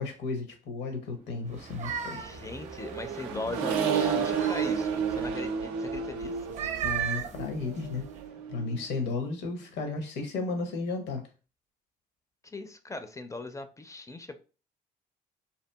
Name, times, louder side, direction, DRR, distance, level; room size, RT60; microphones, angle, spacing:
voice 1, 0.0-2.2 6.8-8.0 8.5-11.2, left 3 dB, 70° left, 0.8 m, -33 dB
sound 1, 1.5-3.6 4.1-5.3 6.4-8.2, right 8 dB, 40° right, 0.6 m, -37 dB
voice 2, 2.1-6.6 12.4-14.4, left 2 dB, 15° left, 0.4 m, -40 dB
Accelerating revving vroom, 2.1-8.8, right 6 dB, 85° right, 0.4 m, -31 dB
2.8 x 2.4 x 2.2 m
hypercardioid pair, 55°, 19 cm